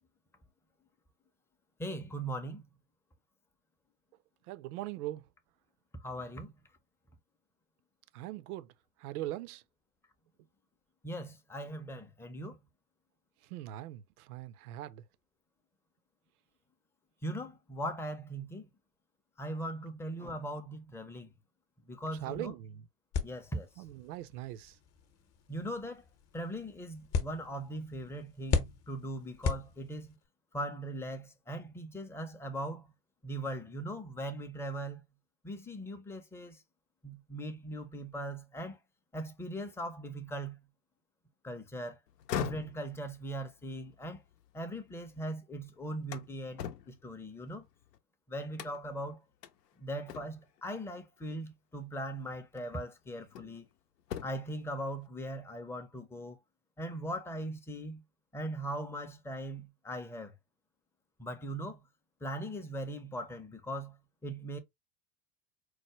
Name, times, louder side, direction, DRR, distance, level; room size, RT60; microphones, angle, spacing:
voice 1, 1.8-2.6 6.0-6.5 11.0-12.6 17.2-18.7 19.4-21.3 21.9-22.5 23.2-23.7 25.5-26.0 26.3-30.1 30.5-32.9 33.2-35.0 35.4-36.6 37.0-38.8 39.1-40.6 41.4-42.0 42.3-44.2 44.5-47.6 48.3-49.2 49.8-53.6 54.2-56.4 56.8-58.0 58.3-60.3 61.2-61.8 62.2-64.0 64.2-64.6, right 1 dB, 5° left, 0.5 m, -39 dB
voice 2, 4.5-5.2 8.1-8.7 9.0-9.6 13.4-15.0 22.2-22.9 23.8-24.8, right 15 dB, 65° right, 0.6 m, -41 dB
sound 1, 23.1-30.3, left 5 dB, 35° left, 0.8 m, -38 dB
sound 2, 42.1-45.2 45.6-48.0 48.5-49.0 49.4-49.5 50.1-50.6 51.8-52.0 52.5-53.7 54.0-54.6, left 9 dB, 80° left, 0.7 m, -42 dB
4.6 x 2.1 x 3.0 m
hypercardioid pair, 90°, 48 cm